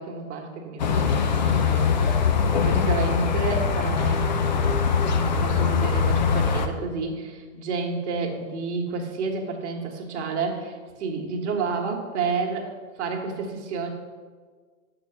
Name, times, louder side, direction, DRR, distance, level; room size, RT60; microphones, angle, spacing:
voice 1, 0.0-2.2 2.6-4.6 4.9-12.7 13.0-13.9, right 4 dB, 50° right, 1 dB, 1.7 m, -30 dB
sound 1, 0.8-6.7, left 6 dB, 35° left, 0.4 m, -22 dB
7.1 x 5.9 x 6.4 m, 1.5 s
hypercardioid pair, 155°, 44 cm